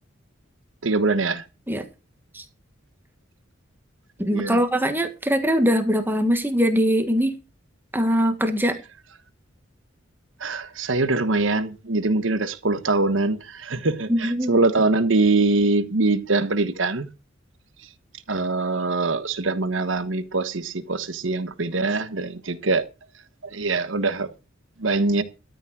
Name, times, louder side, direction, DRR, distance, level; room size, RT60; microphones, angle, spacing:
voice 1, 0.8-1.4 4.2-4.6 10.4-17.1 18.3-22.9 23.4-24.3 24.8-25.2, right 3 dB, 75° right, 1.2 m, -23 dB
voice 2, 4.2-7.4 7.9-8.8 14.1-14.6, equal, 10° right, 1.5 m, -22 dB
13.5 x 5.3 x 7.5 m
head